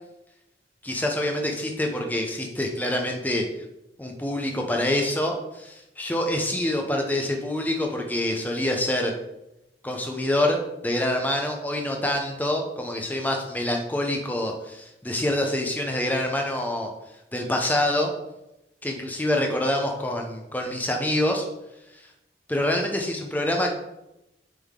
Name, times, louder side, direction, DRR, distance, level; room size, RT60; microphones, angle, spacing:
voice 1, 0.8-3.4 4.0-9.1 9.8-16.9 17.3-18.1 18.8-21.4 22.5-23.7, left 1 dB, 10° left, 2 dB, 0.7 m, -26 dB
7.7 x 3.7 x 3.7 m, 0.91 s
head